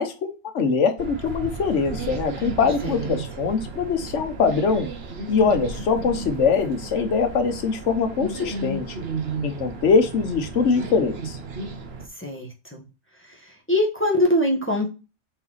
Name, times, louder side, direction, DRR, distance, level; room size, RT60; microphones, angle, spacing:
voice 1, 0.0-4.9 5.3-8.9 9.4-11.4, left 5 dB, 80° left, 8 dB, 1.3 m, -22 dB
sound 1, 1.0-12.1, right 3 dB, 60° right, 1.2 m, -33 dB
voice 2, 12.2-12.8 13.7-14.9, left 1 dB, 10° left, 0 dB, 1.3 m, -22 dB
5.5 x 4.3 x 4.0 m, 0.31 s
omnidirectional pair, 1.2 m